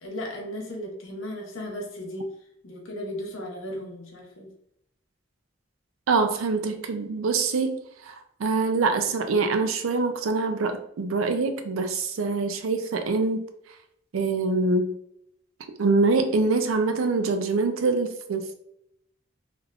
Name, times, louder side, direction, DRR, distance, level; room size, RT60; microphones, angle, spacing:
voice 1, 0.0-2.3 2.6-4.5, left 1 dB, 80° left, 0 dB, 0.9 m, -35 dB
voice 2, 6.1-13.5 14.1-15.0 15.8-18.5, right 3 dB, 90° right, 7 dB, 0.4 m, -24 dB
3.4 x 2.3 x 2.3 m, 0.75 s
head